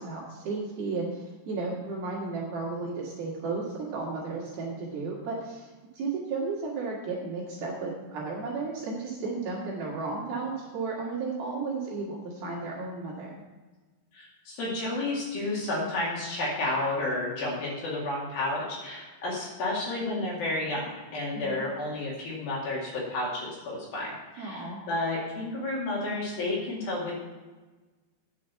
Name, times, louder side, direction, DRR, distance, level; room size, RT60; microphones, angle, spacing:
voice 1, 0.0-5.7 5.9-13.4 21.3-21.6 24.4-24.8, right 3 dB, 60° right, -4 dB, 3.2 m, -34 dB
voice 2, 14.1-27.1, left 2 dB, 55° left, -5 dB, 3.6 m, -31 dB
10.0 x 6.4 x 7.0 m, 1.3 s
omnidirectional pair, 5.7 m